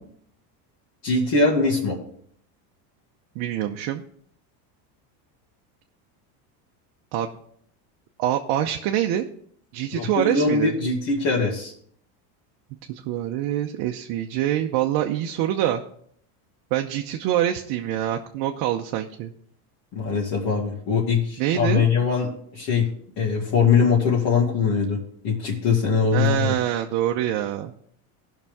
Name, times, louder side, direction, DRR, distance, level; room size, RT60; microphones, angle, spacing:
voice 1, 1.0-2.0 9.9-11.7 19.9-22.9 23.2-25.0 25.2-26.6, left 5 dB, 50° left, -4 dB, 2.3 m, -22 dB
voice 2, 3.4-4.0 7.1-7.3 8.2-9.3 9.7-10.8 12.9-15.8 16.7-19.3 21.4-21.9 26.1-27.7, right 11 dB, 60° right, 3 dB, 0.8 m, -25 dB
16.5 x 5.9 x 3.6 m, 0.64 s
supercardioid pair, 135°, 45 cm